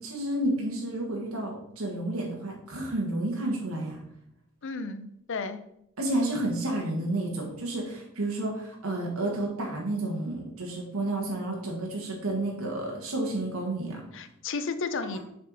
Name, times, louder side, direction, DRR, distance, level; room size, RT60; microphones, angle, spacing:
voice 1, 0.0-4.0 6.0-14.0 15.1-15.2, right 1 dB, 85° right, -1 dB, 1.4 m, -31 dB
voice 2, 4.6-5.6 14.1-15.2, left 4 dB, 60° left, 11 dB, 0.6 m, -33 dB
6.3 x 4.5 x 4.0 m, 0.76 s
head